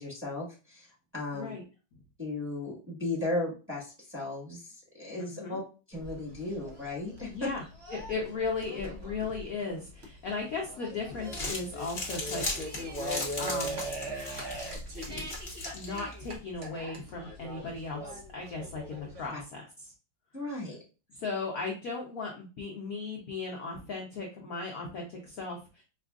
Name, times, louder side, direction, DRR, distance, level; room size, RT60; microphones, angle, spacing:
voice 1, 0.0-1.5 2.2-5.6 5.9-7.5 19.3-19.4 20.3-20.8, left 2 dB, 5° right, -6 dB, 1.3 m, -36 dB
voice 2, 5.2-5.6 7.3-7.6 7.9-12.4 13.4-13.8 15.1-15.3 15.7-19.7 21.1-25.8, left 4 dB, 60° left, -1 dB, 0.9 m, -36 dB
sound 1, 5.9-19.3, equal, 45° right, 0.9 m, -41 dB
Crumpling crinkling, 11.1-16.4, left 2 dB, 30° left, 1.1 m, -38 dB
5.3 x 2.4 x 2.3 m, 0.34 s
omnidirectional pair, 2.1 m